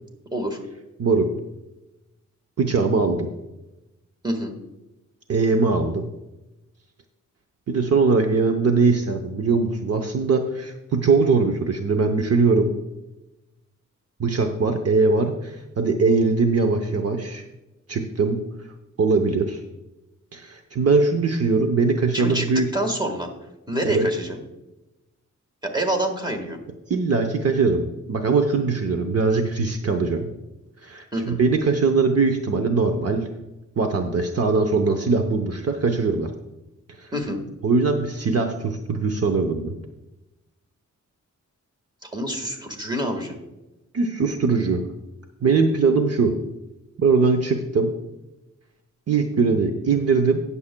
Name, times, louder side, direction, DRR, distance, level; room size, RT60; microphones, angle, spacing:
voice 1, 0.3-0.6 4.2-4.5 22.1-22.5 22.7-23.3 23.7-24.4 25.6-26.6 31.1-31.4 37.1-37.4 42.0-43.4, right 1 dB, 15° right, 3 dB, 1.5 m, -26 dB
voice 2, 1.0-1.3 2.6-3.3 5.3-6.1 7.7-12.7 14.2-17.4 17.9-18.4 19.0-19.6 20.3-22.7 23.8-24.1 26.9-30.3 30.8-33.3 33.8-36.3 37.0-37.1 37.6-39.7 43.9-44.8 45.4-46.3 47.0-47.9 49.1-50.4, right 4 dB, 50° right, 5 dB, 0.7 m, -21 dB
18.5 x 7.0 x 2.2 m, 0.99 s
wide cardioid pair, 150°, 31 cm